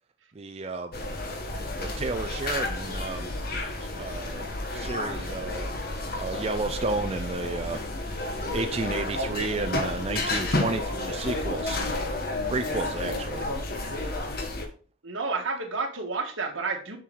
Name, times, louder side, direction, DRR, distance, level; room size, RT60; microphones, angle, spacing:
voice 1, 0.3-0.9 1.8-3.3 4.0-5.7 6.1-7.8 8.5-11.8 12.5-13.5, right 3 dB, 30° right, 7 dB, 0.4 m, -32 dB
sound 1, 0.9-14.7, left 2 dB, 50° left, 1.4 m, -31 dB
voice 2, 15.0-17.0, right 4 dB, 80° right, 3 dB, 1.7 m, -30 dB
7.1 x 6.1 x 3.9 m, 0.39 s
head